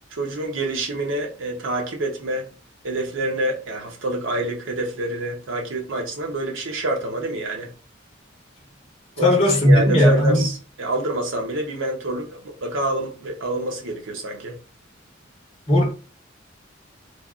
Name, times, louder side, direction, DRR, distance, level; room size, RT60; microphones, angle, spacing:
voice 1, 0.1-2.5 2.8-7.7 9.2-9.3 9.7-14.6, right 2 dB, 80° right, 0.8 m, -27 dB
voice 2, 9.2-10.4 15.7-15.9, left 1 dB, 30° left, 1.1 m, -16 dB
3.2 x 2.3 x 2.4 m
head